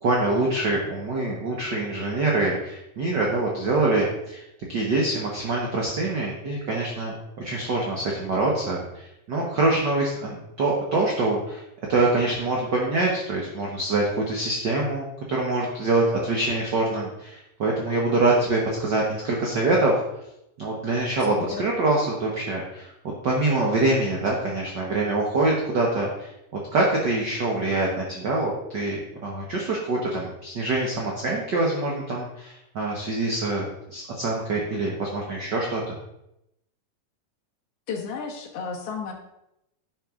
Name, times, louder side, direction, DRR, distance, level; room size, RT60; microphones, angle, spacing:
voice 1, 0.0-4.4 4.7-11.6 11.9-20.0 20.6-22.9 23.2-26.3 26.7-35.9, right 2 dB, 60° right, -2 dB, 1.1 m, -25 dB
voice 2, 21.3-21.6 37.9-39.1, left 5 dB, 55° left, -1 dB, 2.1 m, -32 dB
10.5 x 6.0 x 3.7 m, 0.84 s
omnidirectional pair, 3.7 m